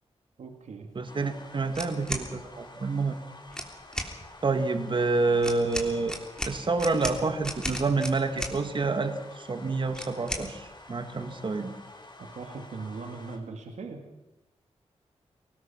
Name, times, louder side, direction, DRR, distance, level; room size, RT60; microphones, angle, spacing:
voice 1, 0.4-0.9 12.2-14.0, right 4 dB, 80° right, 4 dB, 2.2 m, -39 dB
voice 2, 0.9-3.2 4.4-6.1 6.5-11.7, right 3 dB, 45° right, 7 dB, 2.0 m, -28 dB
sound 1, 1.1-13.4, left 2 dB, 40° left, 4.1 m, -49 dB
sound 2, 1.7-2.3 3.5-4.1 5.4-8.6 9.9-10.5, equal, 5° left, 3.3 m, -34 dB
23.5 x 19.5 x 6.0 m, 1.0 s
wide cardioid pair, 100°, 12 cm